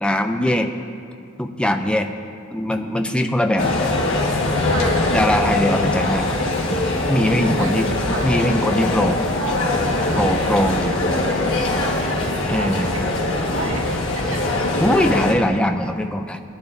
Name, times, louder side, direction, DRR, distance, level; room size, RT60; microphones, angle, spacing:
voice 1, 0.0-0.7 1.4-2.1 2.5-3.8 5.1-6.3 7.1-7.9 8.2-9.2 10.1-11.0 12.5-12.9 14.8-16.4, left 1 dB, 5° left, 5 dB, 0.5 m, -21 dB
sound 1, 3.6-15.3, left 2 dB, 75° left, 1.6 m, -22 dB
voice 2, 4.7-5.2 7.4-7.7 8.1-8.7 10.1-10.3 10.5-10.7 11.9-12.3 12.6-13.1 13.4-13.9 14.1-14.6, right 2 dB, 85° right, -1 dB, 1.8 m, -32 dB
19.5 x 10.5 x 2.7 m, 2.3 s
head